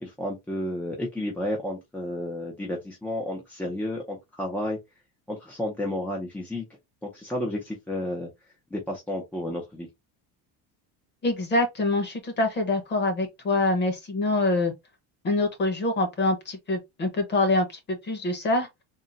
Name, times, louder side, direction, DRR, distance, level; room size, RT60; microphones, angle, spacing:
voice 1, 0.0-4.8 5.3-6.6 7.0-8.3 8.7-9.9, left 1 dB, 5° left, 0.4 m, -31 dB
voice 2, 11.2-14.7 15.2-18.7, left 2 dB, 25° left, 1.0 m, -25 dB
3.8 x 2.1 x 3.8 m
cardioid pair, 170°, 42 cm